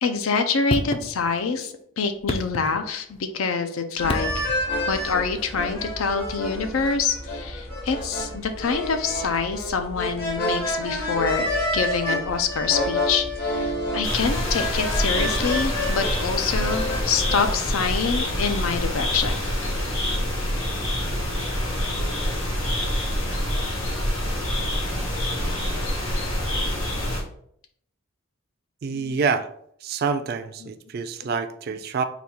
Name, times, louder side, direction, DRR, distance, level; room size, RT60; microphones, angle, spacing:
voice 1, 0.0-4.3 4.9-11.5 11.7-19.5 28.9-29.1, left 5 dB, 85° left, 7 dB, 0.5 m, -26 dB
sound 1, 0.7-1.6 2.1-3.3 4.0-4.7 6.3-6.4, left 2 dB, 25° left, 0.3 m, -31 dB
sound 2, 4.0-17.4, left 1 dB, 45° left, 0.9 m, -29 dB
sound 3, 14.0-27.2, left 1 dB, 65° left, 1.2 m, -26 dB
voice 2, 28.8-29.5 29.8-32.0, right 5 dB, 50° right, 10 dB, 0.3 m, -27 dB
4.0 x 2.3 x 4.3 m, 0.68 s
head